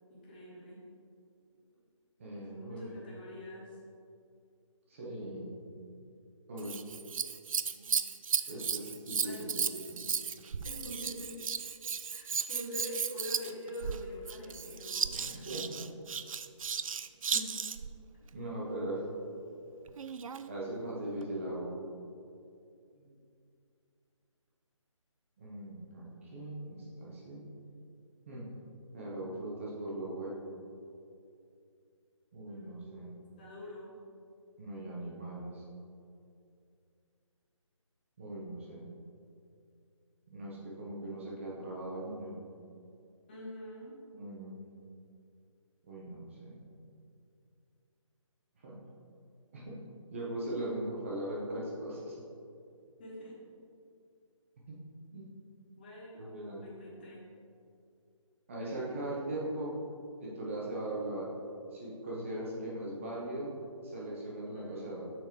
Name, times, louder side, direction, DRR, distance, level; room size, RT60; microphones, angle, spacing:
voice 1, 0.1-0.8 1.7-1.8 2.3-3.8 7.7-8.1 8.3-8.5 9.2-9.6 10.6-11.4 12.1-15.5 22.9-23.1 32.4-33.9 43.3-44.0 53.0-53.3 55.8-56.3 56.6-57.3 64.5-64.9, equal, 20° left, -5 dB, 1.1 m, -45 dB
voice 2, 2.2-2.8 4.9-5.5 6.5-6.8 8.5-10.1 15.1-15.7 17.3-17.5 18.3-19.0 20.5-21.8 25.4-27.5 28.3-28.5 28.9-30.4 32.3-33.1 34.6-35.6 38.2-38.8 40.3-42.4 44.1-44.6 45.8-46.6 48.6-48.8 49.5-49.8 50.1-52.2 55.1-55.3 56.1-56.6 58.5-59.7 60.2-61.3 61.7-63.5 63.8-65.1, right 1 dB, 25° right, -5 dB, 1.0 m, -39 dB
Scissors, 6.6-17.9 19.9-20.5 21.2-21.3, right 6 dB, 85° right, 0.4 m, -35 dB
6.9 x 6.4 x 3.2 m, 2.5 s
hypercardioid pair, 170°, 17 cm